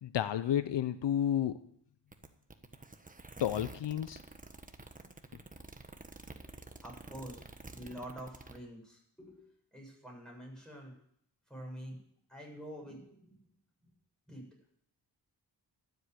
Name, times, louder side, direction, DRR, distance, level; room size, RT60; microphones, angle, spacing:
voice 1, 0.0-1.6 3.4-4.2, left 10 dB, 80° left, 13 dB, 0.7 m, -31 dB
sound 1, 2.1-8.6, right 2 dB, 20° right, 1.3 m, -50 dB
voice 2, 6.8-9.4 9.7-10.9 11.5-12.0 12.3-13.4 14.3-14.4, equal, ahead, -2 dB, 7.5 m, -47 dB
12.5 x 8.1 x 8.0 m, 0.68 s
cardioid pair, 65°, 42 cm